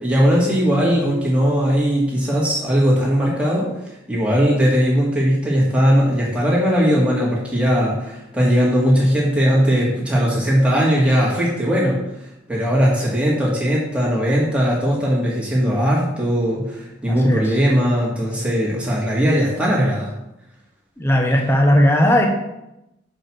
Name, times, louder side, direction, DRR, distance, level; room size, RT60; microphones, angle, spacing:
voice 1, 0.0-3.7 4.1-12.0 12.5-20.1, equal, 5° right, -6 dB, 2.3 m, -18 dB
voice 2, 21.0-22.3, equal, 15° left, 2 dB, 0.9 m, -16 dB
6.2 x 5.4 x 6.2 m, 0.88 s
head